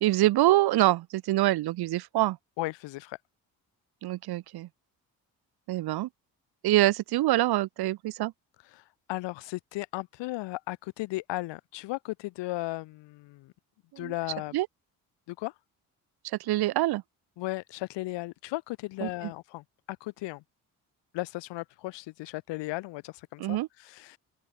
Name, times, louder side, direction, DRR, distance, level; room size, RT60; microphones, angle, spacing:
voice 1, 0.0-2.4 4.0-4.7 5.7-6.1 6.6-8.3 13.9-14.1 14.5-14.7 16.2-17.0 19.0-19.3 23.4-23.7, right 16 dB, 60° right, 0.8 m, -25 dB
voice 2, 2.6-3.2 8.7-13.5 14.0-14.6 15.3-15.5 17.4-20.4 21.1-24.2, left 20 dB, 75° left, 1.6 m, -36 dB
open air
hypercardioid pair, 55°, 43 cm